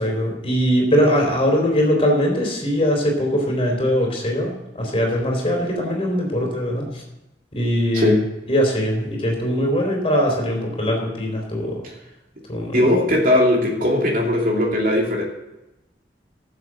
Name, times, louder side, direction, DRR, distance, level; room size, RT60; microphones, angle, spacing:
voice 1, 0.0-7.0 7.5-8.2 8.5-11.8 12.5-12.9, equal, 30° left, 1 dB, 3.7 m, -21 dB
voice 2, 12.7-15.2, left 1 dB, 50° right, -1 dB, 2.9 m, -18 dB
13.0 x 7.6 x 7.7 m, 0.96 s
head